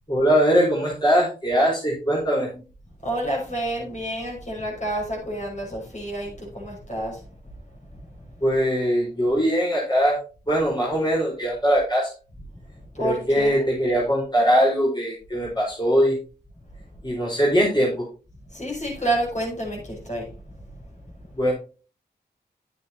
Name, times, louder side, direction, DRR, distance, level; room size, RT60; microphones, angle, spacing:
voice 1, 0.1-2.5 8.4-10.2 10.5-12.1 13.0-16.2 17.0-18.0 21.4-21.5, equal, 25° left, -5 dB, 4.6 m, -21 dB
voice 2, 3.0-7.2 12.9-13.7 18.5-20.3, right 1 dB, 40° left, -1 dB, 6.0 m, -29 dB
9.8 x 9.3 x 2.9 m, 0.36 s
cardioid pair, 45°, 18 cm